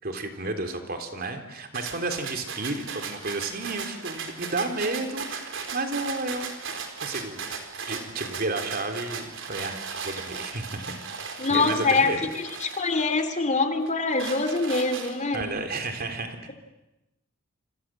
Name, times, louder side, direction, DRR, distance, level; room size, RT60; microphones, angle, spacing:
voice 1, 0.0-6.5 7.0-7.5 7.9-10.9 11.5-12.2 15.3-16.5, right 2 dB, 50° right, 6 dB, 3.6 m, -32 dB
sound 1, 1.7-13.4 13.9-15.4, right 5 dB, 65° right, 4.1 m, -37 dB
voice 2, 11.4-15.5, left 3 dB, 35° left, 8 dB, 2.6 m, -24 dB
28.0 x 27.0 x 7.7 m, 0.99 s
head